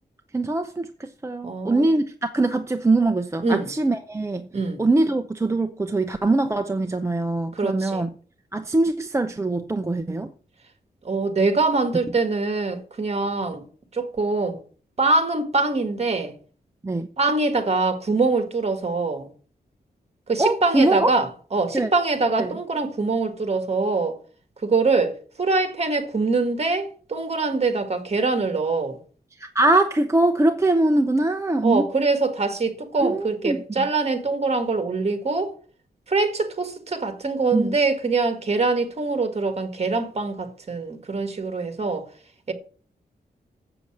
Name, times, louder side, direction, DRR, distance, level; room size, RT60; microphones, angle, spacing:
voice 1, 0.3-4.5 4.8-8.1 8.5-10.3 16.8-17.1 20.4-21.1 21.7-21.9 22.4-22.6 29.4-31.8 33.0-33.6 37.5-37.8, right 2 dB, 15° right, 0.6 m, -22 dB
voice 2, 1.4-1.9 3.4-3.7 4.5-4.8 7.5-8.0 11.0-13.6 13.9-14.6 15.0-16.3 17.2-19.3 20.3-24.2 24.6-29.0 31.6-35.5 36.1-42.1 42.5-42.6, right 3 dB, 40° right, 1.8 m, -24 dB
7.7 x 6.9 x 7.3 m
wide cardioid pair, 145°, 17 cm